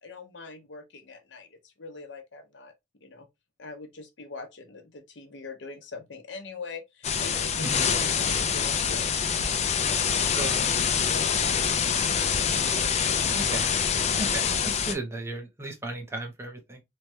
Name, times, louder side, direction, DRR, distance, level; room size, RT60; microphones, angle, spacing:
voice 1, 0.0-2.7 3.0-3.3 3.6-9.1 9.8-12.7 13.2-13.3 14.0-14.2, left 3 dB, 85° left, 0.7 m, -43 dB
sound 1, 7.0-14.9, left 7 dB, 40° left, 0.4 m, -25 dB
voice 2, 7.6-7.9 10.2-10.6 13.3-13.7 14.2-16.8, right 2 dB, 15° right, 0.7 m, -35 dB
3.1 x 2.2 x 2.6 m
head